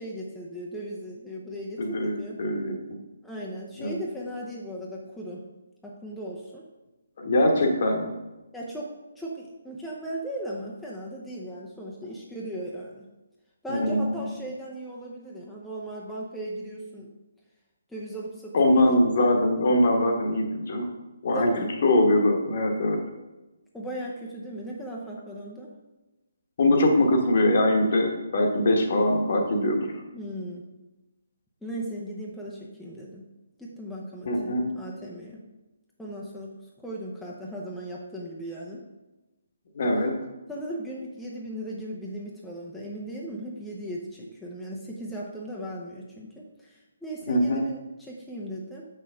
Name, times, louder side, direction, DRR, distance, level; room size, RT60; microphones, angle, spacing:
voice 1, 0.0-2.4 3.2-5.4 5.8-6.6 8.5-13.1 13.6-17.1 17.9-18.9 21.3-21.8 23.7-25.7 30.1-30.7 31.6-33.3 33.6-35.4 36.0-36.6 36.8-38.8 40.5-48.9, right 1 dB, ahead, -5 dB, 0.8 m, -37 dB
voice 2, 1.8-2.8 3.8-4.0 7.2-8.1 13.7-14.1 18.5-20.9 21.2-21.5 21.8-23.0 26.6-29.9 34.3-34.7 39.7-40.1 47.3-47.6, left 1 dB, 45° left, 3 dB, 1.2 m, -22 dB
7.0 x 5.8 x 3.6 m, 1.1 s
figure-of-eight pair, 140°, 0 cm